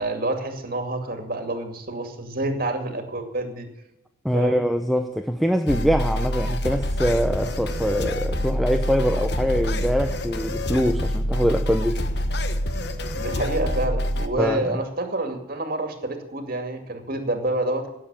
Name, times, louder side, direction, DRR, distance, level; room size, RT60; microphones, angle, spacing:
voice 1, 0.0-3.7 4.3-4.6 13.1-17.9, right 2 dB, 45° right, 5 dB, 2.4 m, -28 dB
voice 2, 4.2-12.0 14.4-14.6, equal, ahead, 6 dB, 0.6 m, -23 dB
sound 1, 5.7-14.3, equal, 55° left, 1.2 m, -26 dB
17.5 x 7.7 x 8.8 m, 0.94 s
head